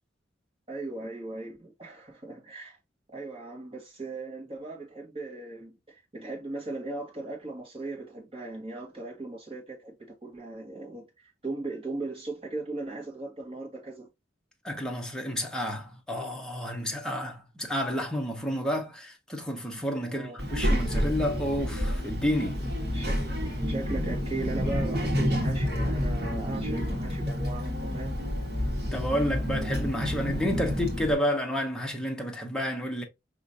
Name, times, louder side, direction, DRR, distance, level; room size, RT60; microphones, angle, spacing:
voice 1, 0.7-2.8 3.1-14.1 20.0-20.4 22.9-23.4 23.7-28.2, right 2 dB, 30° right, 1.6 m, -38 dB
voice 2, 14.6-22.6 28.9-33.0, equal, 5° left, 0.8 m, -30 dB
Child speech kid speaking, 20.4-31.1, equal, 60° right, 1.5 m, -29 dB
5.0 x 3.0 x 2.6 m
head